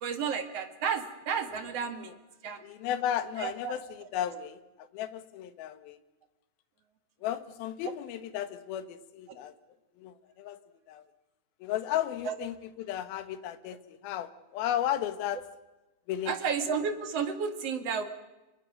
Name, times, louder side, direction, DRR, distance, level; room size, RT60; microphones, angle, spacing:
voice 1, 0.0-2.1 2.4-2.6 3.4-3.8 12.2-12.3 16.3-18.1, right 6 dB, 50° right, 7 dB, 2.3 m, -32 dB
voice 2, 2.6-6.0 7.2-9.5 10.0-10.6 10.9-11.0 11.6-15.4 16.1-16.3, left 11 dB, 75° left, 11 dB, 3.0 m, -34 dB
26.0 x 24.0 x 6.5 m, 1.0 s
omnidirectional pair, 4.5 m